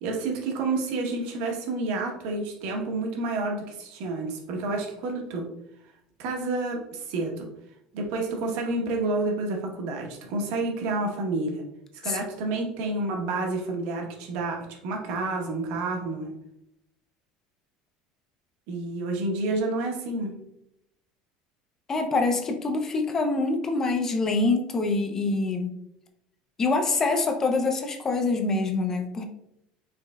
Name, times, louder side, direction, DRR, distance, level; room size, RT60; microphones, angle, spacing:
voice 1, 0.0-5.5 6.2-7.5 7.9-11.6 12.0-16.3 18.7-20.4, right 2 dB, 60° right, 2 dB, 0.9 m, -29 dB
voice 2, 21.9-25.8 26.6-29.2, left 3 dB, 15° left, 4 dB, 0.4 m, -25 dB
5.1 x 3.2 x 2.2 m, 0.79 s
cardioid pair, 175°, 3 cm